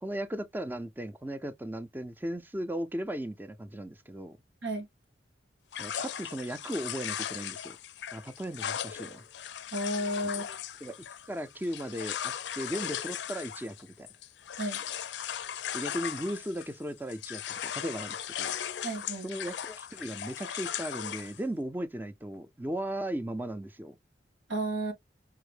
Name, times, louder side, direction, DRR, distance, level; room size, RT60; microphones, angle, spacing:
voice 1, 0.0-4.4 5.8-7.8 8.1-9.2 10.8-10.9 11.3-14.1 15.7-18.5 19.2-24.0, right 1 dB, 10° right, 0.4 m, -36 dB
sound 1, 5.7-16.8 17.1-21.4, left 9 dB, 75° left, 0.4 m, -38 dB
voice 2, 9.7-10.6 14.6-14.8 18.8-19.3 24.5-24.9, right 1 dB, 90° right, 1.8 m, -32 dB
5.6 x 2.0 x 3.2 m
head